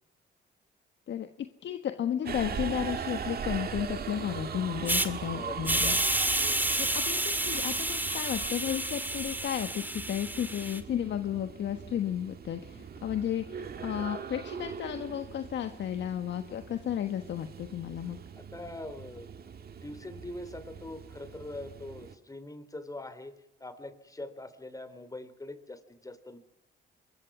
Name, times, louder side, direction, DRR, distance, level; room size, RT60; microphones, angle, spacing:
voice 1, 1.6-6.0 6.8-18.2, left 10 dB, 65° left, 7 dB, 1.4 m, -33 dB
Subway metro underground, 2.3-22.2, right 7 dB, 50° right, 2.0 m, -40 dB
Hiss, 4.9-5.1 5.6-10.8, right 1 dB, 10° right, 2.1 m, -30 dB
voice 2, 5.3-6.1 6.4-6.8 18.3-23.3 23.6-26.4, left 2 dB, 15° left, 12 dB, 3.1 m, -43 dB
26.0 x 22.0 x 6.1 m, 0.82 s
cardioid pair, 90°, 20 cm